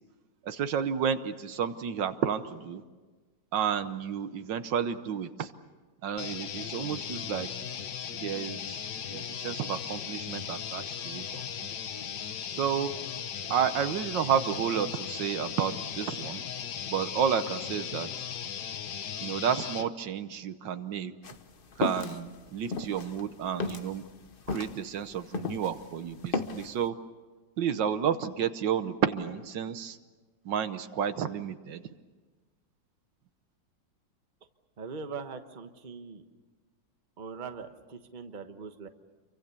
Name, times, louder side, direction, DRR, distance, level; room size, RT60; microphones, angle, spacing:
voice 1, 0.4-2.8 3.5-5.5 6.0-7.5 8.2-8.8 9.1-11.7 12.5-12.9 13.5-16.4 16.9-18.1 19.2-21.1 21.8-24.0 24.5-26.9 27.6-30.0 30.4-31.8, right 8 dB, 75° right, 11 dB, 1.6 m, -31 dB
sound 1, 6.2-19.9, left 8 dB, 65° left, 1.6 m, -37 dB
sound 2, 21.2-25.9 26.1-26.8, left 4 dB, 40° left, 0.9 m, -34 dB
voice 2, 34.8-36.2 37.2-38.9, right 5 dB, 30° right, 7 dB, 1.2 m, -41 dB
28.5 x 24.0 x 6.9 m, 1.3 s
omnidirectional pair, 2.0 m